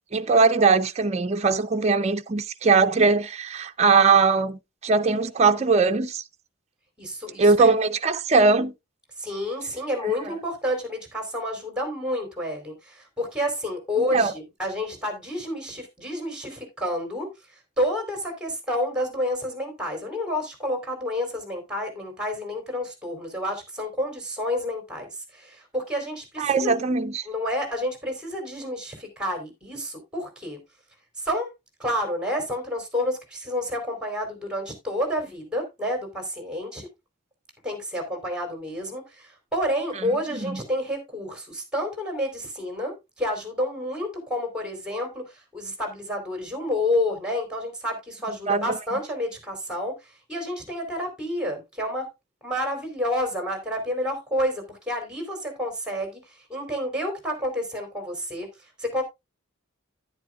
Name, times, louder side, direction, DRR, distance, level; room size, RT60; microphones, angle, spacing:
voice 1, 0.1-6.2 7.4-8.7 10.2-10.3 14.1-14.3 26.4-27.2 40.0-40.1 40.3-40.6 48.5-48.8, right 4 dB, 35° right, 0.5 m, -20 dB
voice 2, 7.0-7.7 9.2-17.3 17.8-26.7 27.3-30.6 31.2-31.5 31.8-36.9 37.6-50.0 50.3-52.1 52.4-56.2 56.5-58.5 58.8-59.0, left 1 dB, 5° right, 3.6 m, -29 dB
11.0 x 10.0 x 2.4 m
head